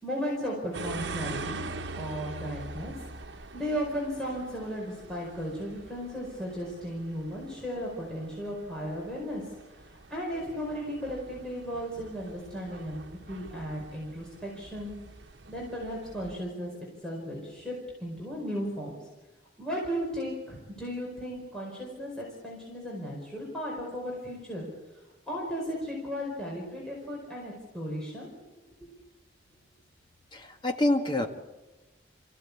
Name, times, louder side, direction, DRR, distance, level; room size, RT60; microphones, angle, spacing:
voice 1, 0.0-1.7 1.9-2.9 3.2-9.4 9.7-14.9 15.5-16.7 17.0-17.7 18.0-18.9 19.6-24.7 24.9-28.3, equal, 5° left, -4 dB, 4.9 m, -35 dB
sound 1, 0.7-16.4, right 3 dB, 80° right, 1.1 m, -43 dB
voice 2, 30.3-31.3, left 1 dB, 25° left, 4 dB, 1.9 m, -26 dB
27.5 x 15.5 x 8.5 m, 1.2 s
head